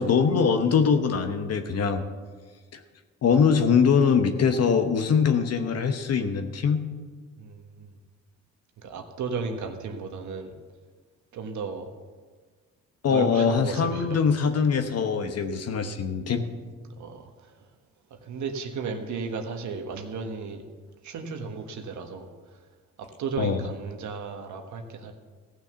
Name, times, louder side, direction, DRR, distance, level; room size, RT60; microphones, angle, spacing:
voice 1, 0.0-2.0 2.7-2.8 3.2-6.8 13.0-16.4 23.4-23.6, left 6 dB, 55° left, 7 dB, 1.0 m, -22 dB
voice 2, 7.4-7.9 8.8-10.5 11.3-11.9 13.1-14.2 16.8-17.5 18.1-20.6 21.0-22.6 23.0-25.1, right 4 dB, 70° right, 5 dB, 1.4 m, -34 dB
15.0 x 6.3 x 6.9 m, 1.5 s
cardioid pair, 90°, 30 cm